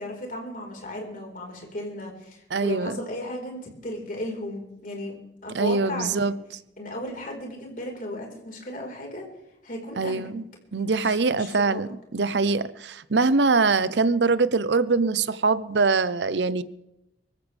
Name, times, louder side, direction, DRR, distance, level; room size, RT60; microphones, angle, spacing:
voice 1, 0.0-5.2 5.4-6.3 6.8-9.2 9.6-10.3 10.7-11.8, left 1 dB, 50° left, 4.6 m, -35 dB
voice 2, 2.5-3.0 5.5-6.3 10.0-10.4 10.7-16.6, right 4 dB, 80° right, 0.7 m, -23 dB
24.5 x 14.5 x 3.4 m
head